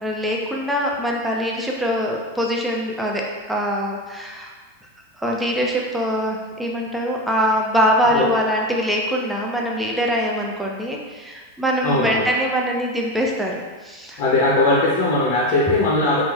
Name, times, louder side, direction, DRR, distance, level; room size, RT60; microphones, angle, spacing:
voice 1, 0.0-3.2 3.5-4.5 5.2-14.2, equal, 5° right, -1 dB, 0.4 m, -23 dB
voice 2, 11.8-12.2 14.2-16.2, left 2 dB, 45° left, -6 dB, 0.6 m, -19 dB
3.0 x 2.5 x 2.4 m, 1.4 s
hypercardioid pair, 100°, 0 cm